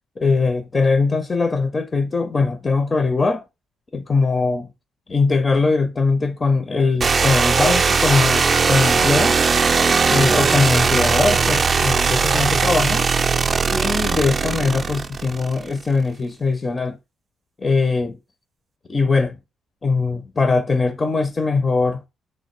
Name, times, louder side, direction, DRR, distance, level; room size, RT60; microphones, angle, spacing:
voice 1, 0.2-3.4 3.9-4.7 5.1-9.4 10.1-13.1 13.7-17.0 17.6-18.2 18.9-19.4 19.8-22.0, left 4 dB, 30° left, 0.4 m, -21 dB
sound 1, 7.0-15.7, right 5 dB, 40° right, 0.3 m, -19 dB
3.1 x 2.6 x 4.3 m
cardioid pair, 90°, 0 cm